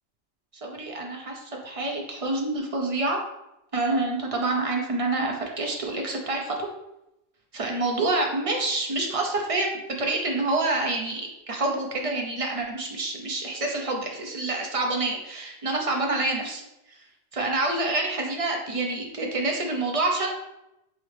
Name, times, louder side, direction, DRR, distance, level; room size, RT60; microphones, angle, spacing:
voice 1, 0.6-3.2 3.7-6.7 7.5-16.6 17.3-20.3, right 2 dB, 35° right, 1 dB, 0.6 m, -27 dB
4.1 x 3.8 x 3.3 m, 0.88 s
omnidirectional pair, 1.3 m